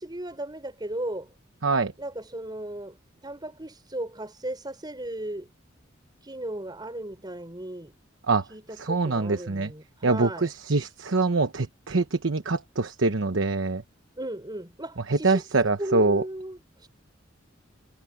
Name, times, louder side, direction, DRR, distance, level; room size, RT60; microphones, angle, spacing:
voice 1, 0.0-1.3 2.0-3.0 3.2-5.5 6.2-7.9 8.5-10.5 14.2-16.9, right 1 dB, 20° right, 4.7 m, -36 dB
voice 2, 8.8-9.7 10.0-13.8 15.2-16.2, right 3 dB, 80° right, 1.0 m, -24 dB
head